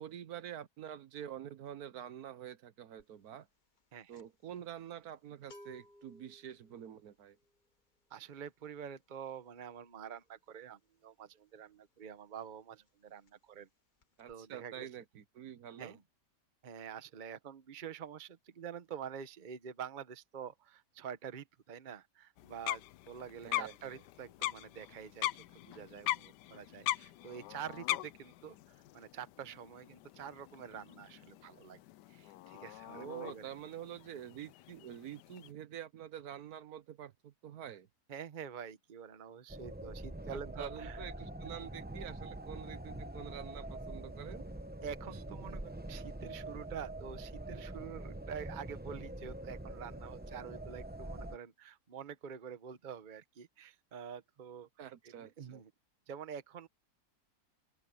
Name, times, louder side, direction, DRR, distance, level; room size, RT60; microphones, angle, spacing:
voice 1, 0.0-3.5 4.1-7.4 14.2-16.0 23.4-24.0 32.9-37.9 40.3-44.4 54.8-55.6, right 10 dB, 65° right, 1.4 m, -47 dB
sound 1, 3.0-3.3 3.5-12.1 12.4-12.6 12.9-13.7 14.0-14.3, left 1 dB, 35° left, 1.0 m, -61 dB
voice 2, 3.9-4.2 8.1-13.7 14.3-14.9 15.8-16.0 16.6-31.8 32.1-33.5 38.1-41.0 41.4-41.5 44.8-55.7 56.1-56.7, right 8 dB, 35° right, 0.9 m, -47 dB
sound 2, 22.4-35.5, left 15 dB, 80° left, 1.2 m, -42 dB
sound 3, 39.5-51.4, right 1 dB, 10° right, 0.5 m, -44 dB
open air
omnidirectional pair, 1.8 m